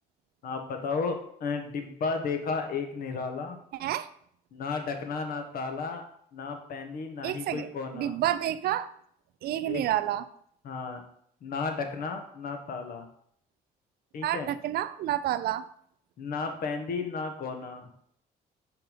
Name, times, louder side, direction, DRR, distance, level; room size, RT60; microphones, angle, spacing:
voice 1, 0.4-3.6 4.5-6.0 6.3-8.1 9.7-9.8 10.6-11.0 11.4-13.1 14.1-14.5 16.2-17.9, left 4 dB, 60° left, 5 dB, 1.5 m, -33 dB
voice 2, 7.2-7.7 7.9-8.9 9.4-10.3 14.2-15.7, right 12 dB, 65° right, 14 dB, 0.5 m, -29 dB
5.7 x 5.4 x 5.6 m, 0.66 s
cardioid pair, 110°, 17 cm